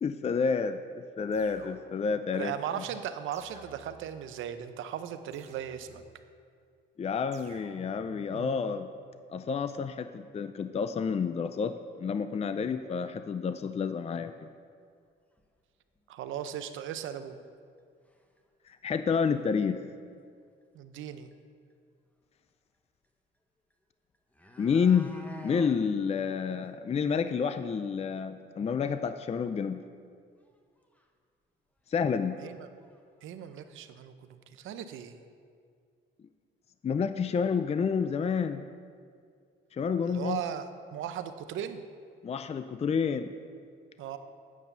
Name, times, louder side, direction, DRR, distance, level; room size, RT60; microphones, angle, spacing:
voice 1, 0.0-2.8 7.0-8.9 9.3-14.5 18.7-19.8 24.6-25.1 25.4-29.8 31.9-32.4 36.8-38.6 39.7-40.4 42.2-43.3, left 6 dB, 30° left, 10 dB, 0.5 m, -29 dB
sound 1, 1.3-2.2 3.3-4.2 5.3-6.2 7.3-8.2, right 4 dB, 35° right, 1.3 m, -55 dB
voice 2, 2.3-6.0 8.3-8.6 12.7-12.8 16.1-17.4 20.7-21.3 32.4-32.7 33.2-35.2 40.1-41.8 44.0-44.2, right 9 dB, 80° right, 9 dB, 0.7 m, -37 dB
sound 2, 15.4-15.5 16.0-16.1 16.4-16.5 17.4-17.5 18.1-18.4 18.7-18.8 19.1-19.5 20.9-21.0 21.3-21.4 23.7-23.8 24.1-25.8 26.2-26.3 26.6-26.7 27.1-27.2 27.6-27.7 30.5-30.6 30.9-31.0 31.8-31.9 32.3-32.6 32.8-33.6 33.9-34.0, left 1 dB, 5° left, 1.1 m, -48 dB
9.4 x 7.4 x 6.8 m, 2.2 s
cardioid pair, 90°, 20 cm